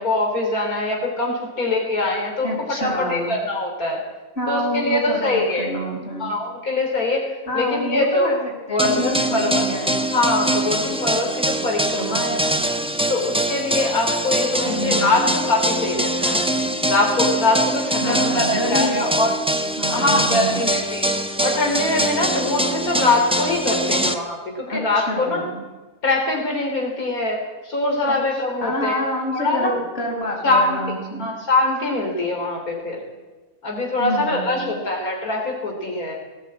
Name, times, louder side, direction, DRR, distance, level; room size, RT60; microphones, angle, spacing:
voice 1, 0.0-2.5 2.8-4.0 4.5-5.7 6.2-8.3 8.7-9.7 10.1-12.6 13.1-16.4 16.8-19.3 19.9-21.1 21.4-25.4 26.0-27.4 27.6-29.0 29.3-29.7 30.4-30.8 31.2-33.0 33.6-36.1, left 2 dB, 85° left, 0 dB, 3.8 m, -23 dB
voice 2, 2.4-3.3 4.4-6.3 7.5-10.0 11.9-12.4 14.6-15.3 18.0-19.3 19.8-20.7 24.7-25.6 28.0-28.2 28.6-31.3 34.0-34.8, equal, 45° left, -1 dB, 5.7 m, -28 dB
sound 1, 8.8-24.1, right 1 dB, 5° right, 1.1 m, -23 dB
19.5 x 16.5 x 8.7 m, 1.2 s
omnidirectional pair, 1.5 m